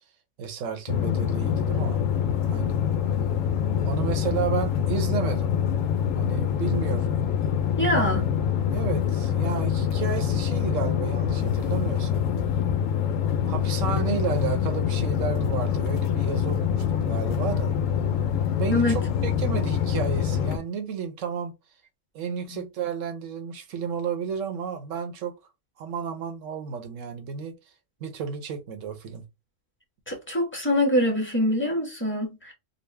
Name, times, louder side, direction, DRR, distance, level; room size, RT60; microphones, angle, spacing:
voice 1, 0.4-2.0 2.5-2.8 3.8-5.5 6.1-7.2 7.9-8.1 8.7-12.3 13.4-17.7 18.4-21.5 22.1-25.3 25.8-27.5 28.0-29.2, right 6 dB, 85° right, 1.2 m, -32 dB
sound 1, 0.9-20.6, left 8 dB, 90° left, 1.0 m, -25 dB
voice 2, 7.8-8.2 18.7-19.0 22.5-22.6 30.1-32.5, left 1 dB, 10° left, 1.0 m, -24 dB
4.0 x 2.1 x 3.2 m
omnidirectional pair, 1.3 m